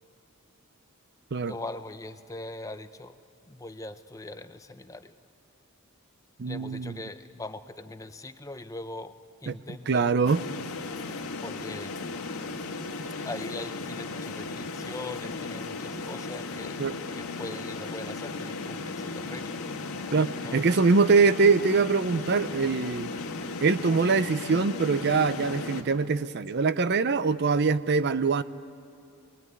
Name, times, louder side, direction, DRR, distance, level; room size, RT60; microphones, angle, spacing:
voice 1, 1.5-3.2 3.5-5.1 6.5-9.1 9.4-10.0 11.4-11.9 13.2-16.8 17.2-19.6 20.4-20.6, left 2 dB, 15° left, 10 dB, 0.6 m, -41 dB
voice 2, 6.4-7.0 9.5-9.6 9.9-10.4 16.8-16.9 20.1-23.1 23.6-28.4, right 4 dB, 50° right, 15 dB, 0.5 m, -23 dB
sound 1, 10.3-25.8, left 3 dB, 80° left, 1.7 m, -36 dB
24.0 x 19.5 x 9.6 m, 2.4 s
head